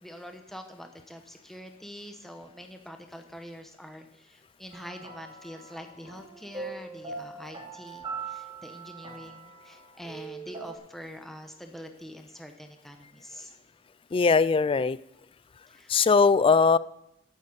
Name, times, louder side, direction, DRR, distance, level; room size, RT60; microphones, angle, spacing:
voice 1, 0.0-13.5 15.7-15.9, equal, ahead, 5 dB, 1.0 m, -45 dB
sound 1, 4.7-10.8, right 4 dB, 25° right, 3.2 m, -41 dB
voice 2, 14.1-15.0 15.9-16.8, left 5 dB, 25° left, 18 dB, 0.3 m, -20 dB
8.6 x 8.5 x 8.1 m, 0.80 s
head